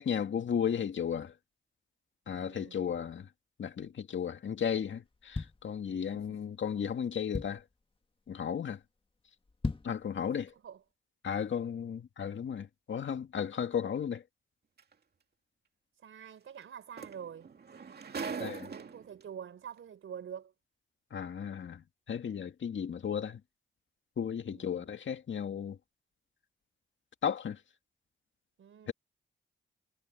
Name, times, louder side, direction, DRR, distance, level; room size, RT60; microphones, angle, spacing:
voice 1, 0.0-1.3 2.3-3.3 3.6-7.6 8.3-8.8 9.8-10.5 11.2-14.2 18.4-18.6 21.1-23.4 24.2-25.8 27.2-27.6 28.9-29.0, left 8 dB, 65° left, 2.1 m, -34 dB
voice 2, 2.4-2.9 6.1-6.4 10.2-10.3 10.6-10.8 16.0-17.5 18.1-20.5 24.5-24.9 28.6-28.9, right 8 dB, 75° right, 3.9 m, -46 dB
sound 1, 5.0-6.3 6.8-6.9 7.1-7.8 8.3-8.5 8.8-8.9 9.4-10.1 10.5-10.6, left 3 dB, 25° left, 1.7 m, -37 dB
sound 2, 14.8-14.9 16.6-16.7 17.0-19.2 20.1-20.2, right 5 dB, 50° right, 2.3 m, -41 dB
cardioid pair, 80°, 21 cm